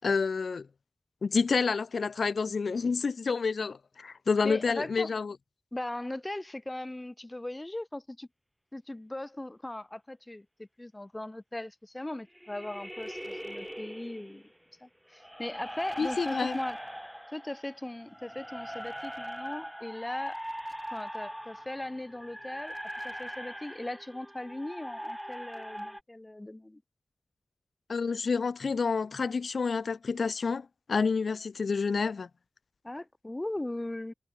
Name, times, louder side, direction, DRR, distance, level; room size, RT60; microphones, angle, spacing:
voice 1, 0.0-0.7 1.2-5.4 16.0-16.6 27.9-32.3, left 5 dB, 85° left, 1.1 m, -29 dB
voice 2, 4.4-5.1 5.7-8.3 8.7-14.4 14.8-16.8 17.3-20.4 20.9-22.7 23.0-26.8 32.8-34.1, left 1 dB, 20° left, 1.8 m, -38 dB
sound 1, 12.4-14.5 15.1-26.0, equal, 5° right, 5.7 m, -41 dB
wide cardioid pair, 85°, 0 cm